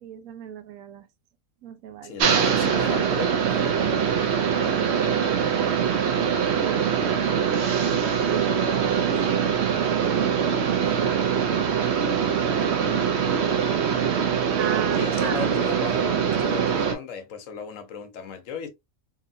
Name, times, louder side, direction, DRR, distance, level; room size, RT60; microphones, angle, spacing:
voice 1, 0.0-1.1 1.6-2.2 5.8-6.1 6.6-9.7 10.0-11.4 11.8-13.2 14.6-15.5, right 9 dB, 80° right, 1.0 m, -37 dB
voice 2, 2.0-4.3 13.2-13.5 14.9-18.7, left 6 dB, 70° left, 1.0 m, -36 dB
sound 1, 2.2-17.0, right 7 dB, 60° right, 0.8 m, -23 dB
3.0 x 2.7 x 2.5 m
omnidirectional pair, 1.5 m